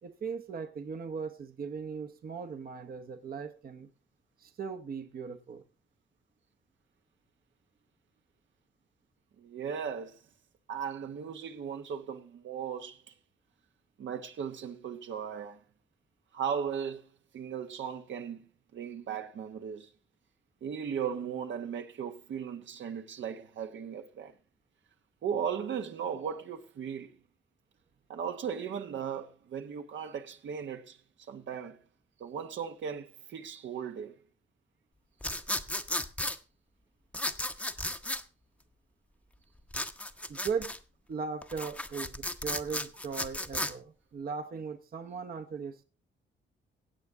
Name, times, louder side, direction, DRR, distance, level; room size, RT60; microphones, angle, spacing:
voice 1, 0.0-3.9 4.4-5.6 40.3-40.7 41.1-45.8, right 5 dB, 50° right, 0.9 m, -38 dB
voice 2, 9.4-10.2 10.7-13.1 14.0-15.6 16.3-19.9 20.6-24.3 25.2-27.1 28.1-31.8 32.2-34.1, right 7 dB, 70° right, 1.1 m, -37 dB
sound 1, 35.2-36.4 37.1-38.2 39.7-40.8 41.4-43.7, left 1 dB, 5° left, 0.8 m, -34 dB
16.5 x 8.1 x 3.6 m
cardioid pair, 110°, 20 cm